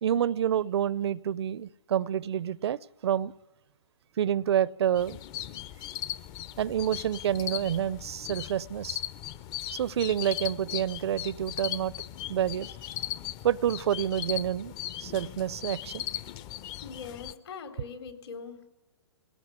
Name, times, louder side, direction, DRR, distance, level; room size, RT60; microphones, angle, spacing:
voice 1, 0.0-3.3 4.2-5.2 6.6-9.0 9.7-11.9 12.3-12.7 13.4-14.7 15.0-16.0, right 10 dB, 65° right, 22 dB, 0.6 m, -28 dB
sound 1, 5.0-17.3, left 12 dB, 30° left, 0.7 m, -38 dB
voice 2, 16.8-18.7, left 6 dB, 65° left, 6 dB, 3.8 m, -42 dB
18.5 x 18.0 x 9.5 m, 0.98 s
hypercardioid pair, 140°, 15 cm